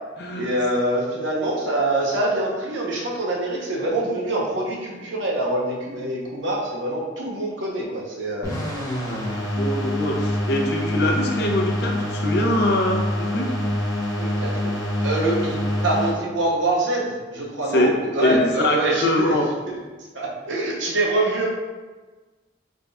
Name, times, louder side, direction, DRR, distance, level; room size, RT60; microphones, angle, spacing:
voice 1, 0.4-8.5 14.2-15.6 15.8-19.3 19.7-19.8 20.1-21.5, right 2 dB, 85° right, -3 dB, 0.8 m, -25 dB
sound 1, 8.4-16.1, left 1 dB, 15° left, 0.7 m, -26 dB
voice 2, 9.1-13.5 17.7-17.9 18.2-19.4, left 1 dB, 60° left, 0 dB, 0.6 m, -23 dB
3.5 x 2.3 x 3.9 m, 1.3 s
head